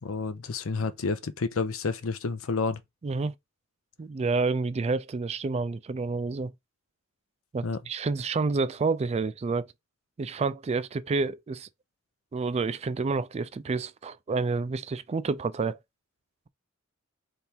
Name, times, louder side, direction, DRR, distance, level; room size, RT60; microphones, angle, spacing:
voice 1, 0.0-2.8 7.6-7.8, left 4 dB, 80° left, 0.7 m, -30 dB
voice 2, 3.0-3.3 4.0-6.5 7.5-9.7 10.2-11.7 12.3-15.8, right 4 dB, 30° right, 0.3 m, -29 dB
3.5 x 3.3 x 4.3 m
head